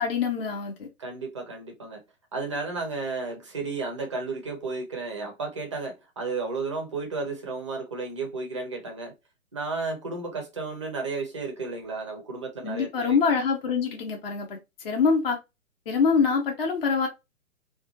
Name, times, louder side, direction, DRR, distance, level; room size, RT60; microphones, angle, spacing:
voice 1, 0.0-0.9 12.6-14.6 14.8-15.4 15.9-17.1, left 5 dB, 40° left, 0.7 m, -24 dB
voice 2, 1.0-2.0 2.3-9.1 9.5-13.2, right 3 dB, 20° right, 0.5 m, -33 dB
2.7 x 2.2 x 2.6 m
figure-of-eight pair, 125°, 43 cm